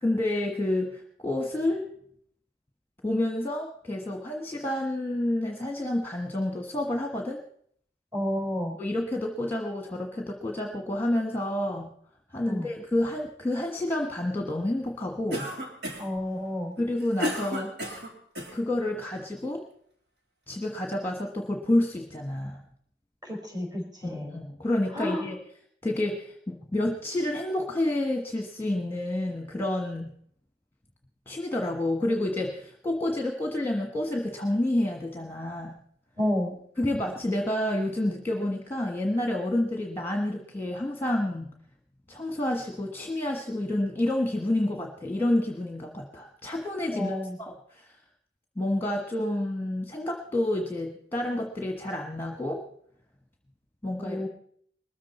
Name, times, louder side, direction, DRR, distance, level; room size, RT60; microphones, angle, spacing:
voice 1, 0.0-1.9 3.0-7.4 8.8-11.9 12.3-15.5 16.8-17.7 18.5-19.6 20.5-22.6 24.0-25.4 25.8-30.1 31.3-35.8 36.8-41.5 42.1-47.1 47.4-47.9 48.6-52.6 53.8-54.3, left 1 dB, 10° left, 3 dB, 1.3 m, -29 dB
voice 2, 8.1-8.8 12.4-12.7 16.0-16.8 23.2-24.3 24.9-25.3 36.2-36.6 46.9-47.4 54.0-54.3, left 1 dB, 25° right, 0 dB, 5.3 m, -30 dB
Cough, 15.3-16.2 16.8-18.6, left 1 dB, 70° right, 3.2 m, -33 dB
21.0 x 14.0 x 4.3 m, 0.63 s
head